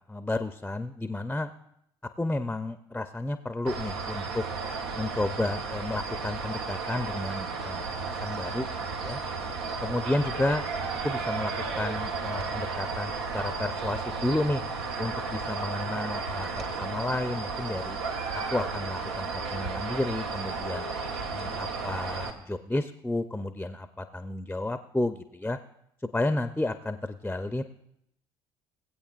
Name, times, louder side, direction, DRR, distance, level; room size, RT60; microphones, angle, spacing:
voice 1, 0.1-1.5 2.2-4.4 5.0-8.7 9.0-9.2 9.8-10.6 11.0-14.6 15.0-18.0 18.3-20.9 21.3-25.6 26.1-27.6, left 2 dB, 5° left, 9 dB, 0.6 m, -31 dB
sound 1, 3.7-22.3, right 4 dB, 80° right, 1.1 m, -33 dB
19.5 x 8.4 x 2.5 m, 0.76 s
hypercardioid pair, 60°, 14 cm